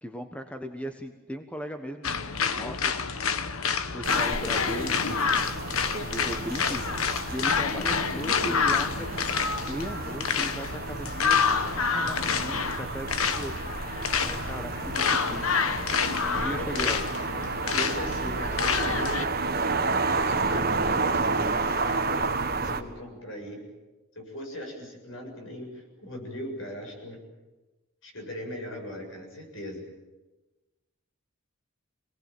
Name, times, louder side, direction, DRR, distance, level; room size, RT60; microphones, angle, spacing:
voice 1, 0.0-2.9 3.8-6.8 7.3-9.3 9.6-11.4 11.8-13.6 14.1-15.6 16.3-17.0, equal, 5° left, 6 dB, 1.2 m, -38 dB
sound 1, 2.0-19.3, left 5 dB, 85° left, 1.2 m, -28 dB
sound 2, 4.0-22.8, right 3 dB, 45° right, 1.5 m, -31 dB
voice 2, 16.3-16.9 17.7-19.2 20.1-23.6 24.2-27.2 28.0-29.9, left 1 dB, 65° left, 2 dB, 7.3 m, -39 dB
26.0 x 19.0 x 9.0 m, 1.1 s
head